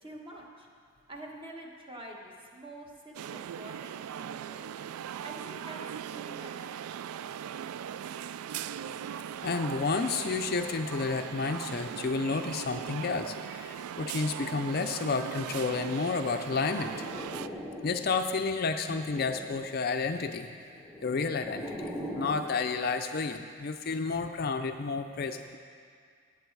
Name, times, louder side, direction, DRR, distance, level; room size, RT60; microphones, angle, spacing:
voice 1, 0.0-0.7 1.1-4.7 5.2-5.8 6.1-6.8, right 1 dB, 25° right, 0 dB, 1.2 m, -47 dB
sound 1, 3.1-17.5, right 9 dB, 85° right, 0.3 m, -39 dB
voice 2, 9.4-17.0 17.8-20.5 21.0-25.6, left 4 dB, 45° left, 7 dB, 0.4 m, -31 dB
sound 2, 16.4-18.2 18.6-19.8 20.7-22.5, equal, 5° right, 0.9 m, -41 dB
16.5 x 8.2 x 4.6 m, 2.2 s
head